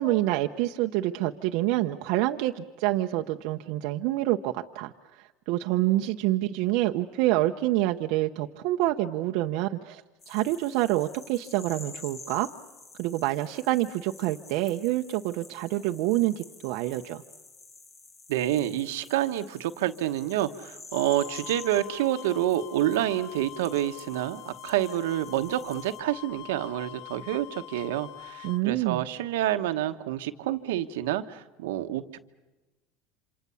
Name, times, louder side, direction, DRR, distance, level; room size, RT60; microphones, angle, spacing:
voice 1, 0.0-10.0 10.3-12.5 13.0-17.2 28.4-29.0, right 16 dB, 70° right, 4 dB, 0.8 m, -27 dB
sound 1, 10.2-26.0, left 4 dB, 30° left, 2.0 m, -49 dB
voice 2, 18.3-32.2, right 13 dB, 90° right, 8 dB, 1.2 m, -28 dB
sound 2, 20.9-28.6, left 15 dB, 60° left, 0.9 m, -44 dB
28.0 x 26.5 x 7.0 m, 1.1 s
supercardioid pair, 115°, 0 cm